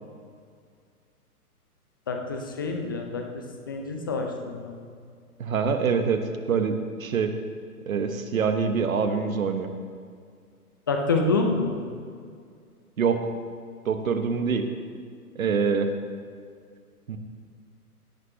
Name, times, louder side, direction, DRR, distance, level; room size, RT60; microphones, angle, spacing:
voice 1, 2.1-4.8 10.9-11.8, left 3 dB, 15° left, 3 dB, 0.4 m, -27 dB
voice 2, 5.4-6.2 6.5-7.3 7.9-9.7 13.0-13.2 13.8-14.6 15.4-15.9 17.1-17.2, right 6 dB, 60° right, 7 dB, 1.2 m, -25 dB
17.0 x 9.4 x 2.9 m, 2.2 s
figure-of-eight pair, 120°, 46 cm